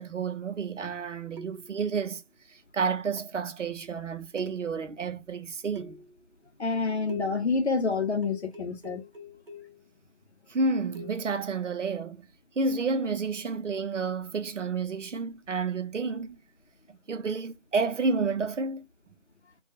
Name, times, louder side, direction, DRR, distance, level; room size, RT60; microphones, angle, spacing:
voice 1, 0.0-2.2 2.5-6.0 10.5-12.3 12.6-16.4 16.9-18.8, right 4 dB, 80° right, 0.7 m, -30 dB
sound 1, 1.4-1.9 3.2-3.5 4.4-5.0 5.8-6.3 7.1-7.6 8.2-9.9 11.0-11.4 12.8-13.0, left 3 dB, 50° right, 0.7 m, -43 dB
voice 2, 6.6-9.0, left 4 dB, 65° left, 0.8 m, -28 dB
2.3 x 2.3 x 2.7 m
figure-of-eight pair, 175°, 36 cm